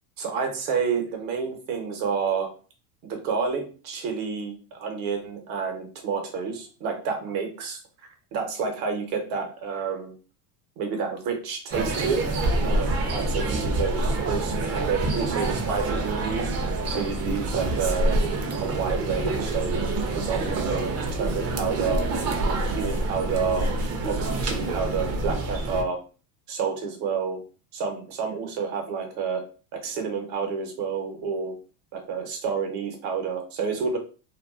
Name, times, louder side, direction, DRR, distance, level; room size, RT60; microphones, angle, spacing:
voice 1, 0.2-2.5 3.0-7.8 8.3-10.1 10.8-12.2 12.6-16.5 16.9-18.2 18.6-19.9 20.1-22.1 22.4-23.7 24.0-26.0 26.5-27.4 27.7-29.4 29.7-31.5 31.9-34.0, right 5 dB, 65° right, 4 dB, 1.0 m, -29 dB
sound 1, 11.7-25.8, right 2 dB, 35° right, 0.6 m, -27 dB
2.5 x 2.3 x 2.4 m, 0.36 s
hypercardioid pair, 95°, 46 cm